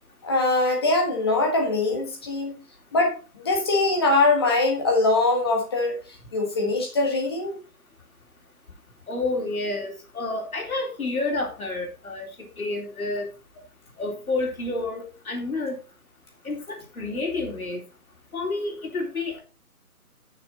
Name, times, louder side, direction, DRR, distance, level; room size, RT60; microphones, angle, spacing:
voice 1, 0.2-2.6 2.9-5.9 6.3-7.6, left 2 dB, 15° left, 1.4 m, -22 dB
voice 2, 9.1-12.3 12.6-13.3 14.0-15.8 16.4-17.8 18.3-19.4, left 2 dB, 60° left, 3.7 m, -29 dB
10.0 x 6.8 x 4.1 m
figure-of-eight pair, 165°, 47 cm